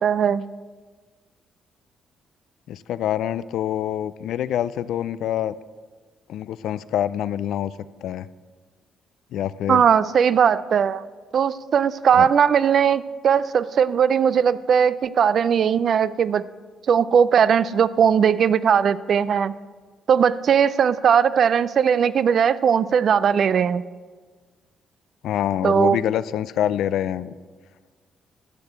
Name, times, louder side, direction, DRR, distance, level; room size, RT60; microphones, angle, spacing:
voice 1, 0.0-0.4 9.7-11.0 11.3-16.4 16.9-19.5 20.1-23.8 25.6-26.0, right 7 dB, 55° right, 17 dB, 0.4 m, -19 dB
voice 2, 2.7-5.5 6.3-7.7 8.0-8.3 9.3-9.8 12.2-12.3 25.2-27.3, left 11 dB, 80° left, 16 dB, 0.4 m, -25 dB
12.0 x 6.8 x 7.2 m, 1.5 s
cardioid pair, 90°, 0 cm